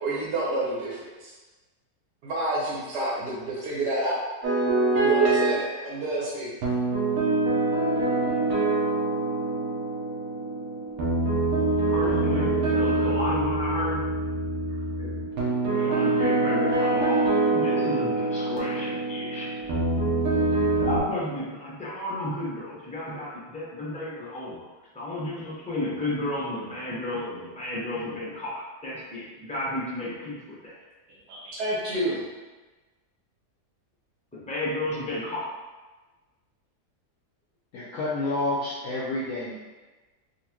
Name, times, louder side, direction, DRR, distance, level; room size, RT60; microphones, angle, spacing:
voice 1, 0.0-1.3 2.2-4.2 4.9-6.5 31.3-32.2, right 2 dB, 80° right, -7 dB, 1.5 m, -29 dB
sound 1, 4.4-5.6 6.6-21.0, right 3 dB, 65° right, 1.2 m, -25 dB
voice 2, 11.9-14.1 15.0-19.5 20.8-24.7 24.9-30.8 34.3-35.5, left 1 dB, 10° left, -7 dB, 0.4 m, -32 dB
voice 3, 37.7-39.6, left 2 dB, 65° left, -5 dB, 0.9 m, -29 dB
4.0 x 2.5 x 2.9 m, 1.2 s
omnidirectional pair, 1.7 m